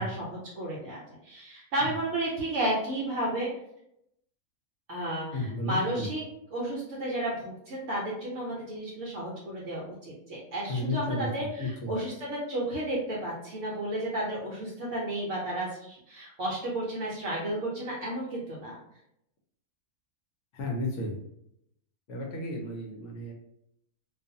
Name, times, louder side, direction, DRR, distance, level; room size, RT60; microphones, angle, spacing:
voice 1, 0.0-3.5 4.9-6.2 6.5-18.8, right 1 dB, 65° right, -5 dB, 0.9 m, -32 dB
voice 2, 5.3-6.1 10.7-11.3 11.6-11.9 20.5-21.2 22.1-23.3, left 1 dB, 65° left, -1 dB, 0.8 m, -33 dB
2.4 x 2.3 x 2.6 m, 0.76 s
omnidirectional pair, 1.5 m